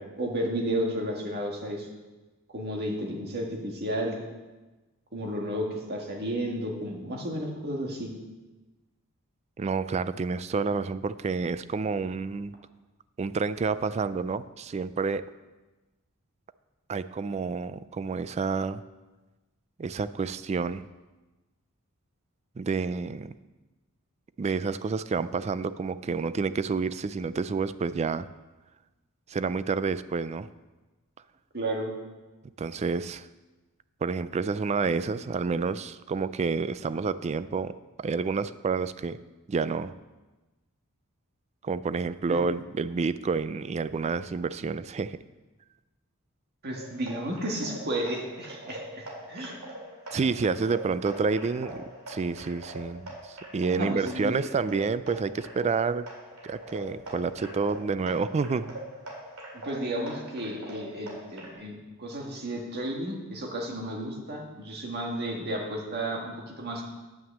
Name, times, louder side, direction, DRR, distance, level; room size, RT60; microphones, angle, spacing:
voice 1, 0.0-1.9 2.5-4.2 5.1-8.1 31.5-31.9 42.3-42.4 46.6-49.6 53.7-54.4 59.6-66.8, right 1 dB, 50° right, 0 dB, 1.8 m, -32 dB
voice 2, 9.6-12.5 13.2-15.2 16.9-18.8 19.8-20.8 22.6-23.3 24.4-28.3 29.3-30.5 32.6-33.3 34.0-37.7 38.0-39.2 39.5-39.9 41.6-45.2 50.1-56.1 56.4-58.7, right 4 dB, 30° right, 15 dB, 0.3 m, -29 dB
sound 1, 46.7-61.5, right 1 dB, 85° right, 2.5 m, -43 dB
9.3 x 5.8 x 7.2 m, 1.2 s
head